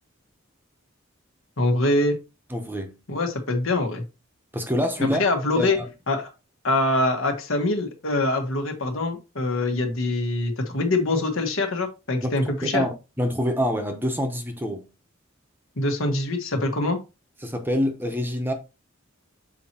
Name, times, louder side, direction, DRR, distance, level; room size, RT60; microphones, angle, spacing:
voice 1, 1.6-2.2 3.1-4.0 5.0-5.8 6.1-6.3 6.6-12.8 15.8-17.0, left 2 dB, 75° left, 1.4 m, -24 dB
voice 2, 2.5-3.0 4.5-5.2 5.6-5.9 12.2-12.3 12.6-14.9 17.4-18.5, equal, 10° right, 0.9 m, -26 dB
7.3 x 4.5 x 2.9 m
head